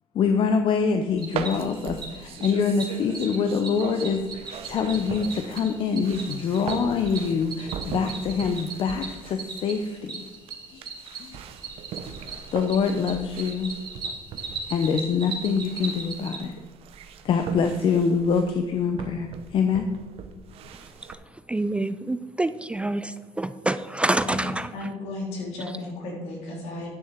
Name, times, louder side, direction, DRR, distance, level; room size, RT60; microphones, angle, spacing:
voice 1, 0.1-10.3 10.7-10.9 11.2-11.4 12.5-13.7 14.7-16.5 17.2-19.9, left 5 dB, 55° left, 6 dB, 0.7 m, -25 dB
Cricket, 1.2-16.4, right 4 dB, 45° right, 2.4 m, -38 dB
sound 1, 1.3-21.1, right 7 dB, 65° right, 0.8 m, -40 dB
voice 2, 21.5-24.9, right 2 dB, 10° right, 12 dB, 0.3 m, -27 dB
voice 3, 24.7-26.9, left 2 dB, 75° left, -1 dB, 3.0 m, -34 dB
9.7 x 6.4 x 4.5 m, 1.3 s
supercardioid pair, 90°, 11 cm